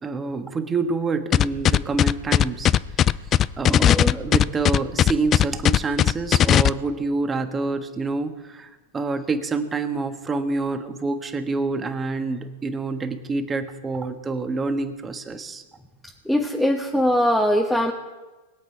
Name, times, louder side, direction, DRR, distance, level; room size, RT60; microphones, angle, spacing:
voice 1, 0.0-2.7 3.3-15.6, right 3 dB, 20° right, 7 dB, 1.5 m, -27 dB
sound 1, 1.3-6.7, left 10 dB, 30° left, 0.3 m, -17 dB
voice 2, 3.7-4.2 16.2-17.9, equal, ahead, -1 dB, 1.2 m, -21 dB
22.0 x 8.0 x 4.6 m, 1.2 s
hypercardioid pair, 100°, 0 cm